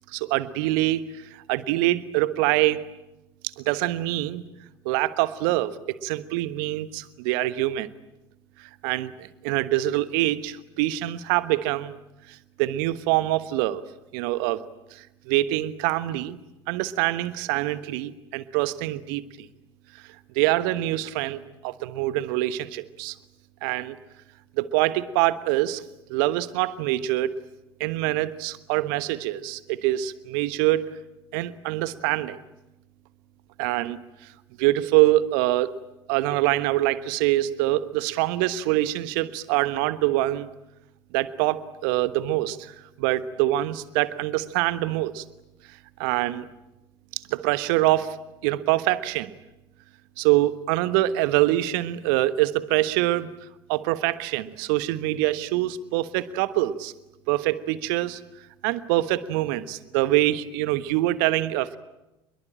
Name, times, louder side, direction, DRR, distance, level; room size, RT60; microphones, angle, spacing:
voice 1, 0.1-1.0 1.5-2.9 3.6-4.4 4.8-7.9 8.6-12.0 12.3-13.8 14.1-16.4 16.7-19.2 20.3-23.2 23.6-24.0 24.6-25.8 26.1-27.3 27.8-30.9 31.3-32.4 33.6-34.0 34.6-35.7 36.1-40.5 41.1-45.2 46.0-46.5 47.3-48.2 48.4-49.3 50.2-53.3 53.7-56.9 57.3-58.2 58.6-61.8, right 16 dB, 65° right, 14 dB, 1.3 m, -25 dB
27.0 x 22.0 x 8.9 m, 0.95 s
figure-of-eight pair, 65°, 13 cm